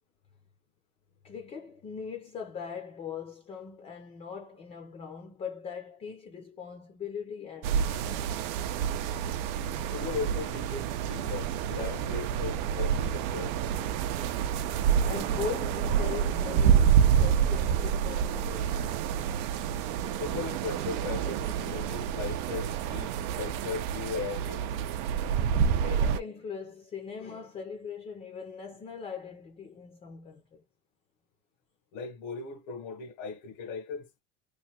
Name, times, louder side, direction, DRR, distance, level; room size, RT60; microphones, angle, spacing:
voice 1, 1.2-8.3 14.6-14.7 15.0-18.8 21.6-21.9 25.8-30.6, left 6 dB, 20° left, 0.5 m, -40 dB
sound 1, 7.6-26.2, right 8 dB, 75° right, 0.6 m, -28 dB
voice 2, 9.9-13.6 20.2-24.7 31.9-34.1, left 5 dB, 80° left, 1.1 m, -37 dB
3.1 x 2.2 x 4.2 m
cardioid pair, 175°, 32 cm